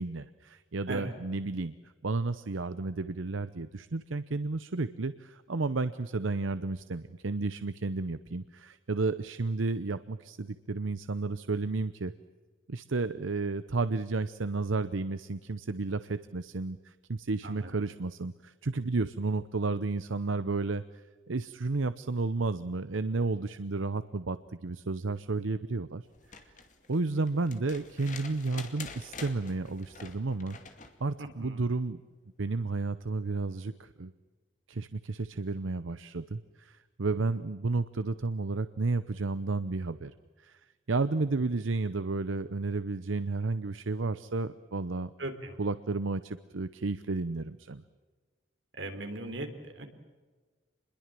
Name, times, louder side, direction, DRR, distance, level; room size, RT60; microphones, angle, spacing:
voice 1, 0.0-1.7 2.0-12.1 12.7-20.8 21.3-26.1 26.9-30.6 31.0-32.0 32.4-34.1 34.7-40.6 40.9-45.1 45.6-47.8, right 3 dB, 90° right, 13 dB, 0.8 m, -32 dB
sound 1, 26.1-31.0 32.6-32.7, left 5 dB, 40° left, 2.4 m, -47 dB
voice 2, 31.2-31.6 45.2-45.5 48.8-49.9, right 2 dB, 70° right, 6 dB, 3.5 m, -38 dB
27.5 x 22.0 x 7.6 m, 1.4 s
head